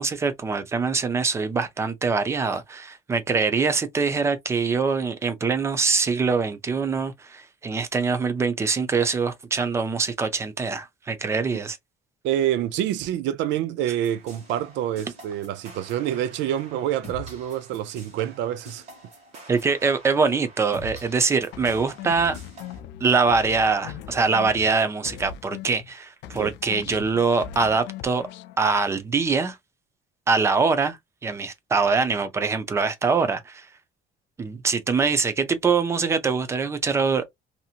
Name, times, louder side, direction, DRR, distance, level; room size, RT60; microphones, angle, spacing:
voice 1, 0.0-11.8 19.5-22.4 23.0-28.3 28.6-29.6 30.3-31.0 31.2-33.7 34.4-37.3, right 4 dB, 15° right, 0.4 m, -23 dB
voice 2, 12.2-18.8 26.4-26.5, right 11 dB, 90° right, 0.4 m, -27 dB
sound 1, 14.0-22.8, right 1 dB, 40° right, 1.6 m, -45 dB
sound 2, 21.5-25.9 26.2-28.6, left 10 dB, 80° left, 0.4 m, -40 dB
2.8 x 2.7 x 2.4 m
cardioid pair, 180°, 18 cm